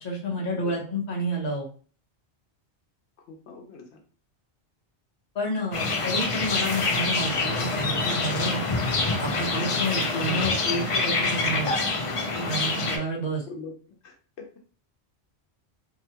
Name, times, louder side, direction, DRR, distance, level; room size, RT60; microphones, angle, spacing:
voice 1, 0.0-1.7 5.3-8.6 9.2-11.7 12.3-13.4, equal, 40° left, -2 dB, 0.9 m, -30 dB
voice 2, 3.3-4.0 13.5-14.5, left 4 dB, 90° left, 2 dB, 0.9 m, -43 dB
sound 1, 5.7-13.0, left 3 dB, 55° left, 0.3 m, -26 dB
2.8 x 2.2 x 2.7 m, 0.41 s
omnidirectional pair, 1.1 m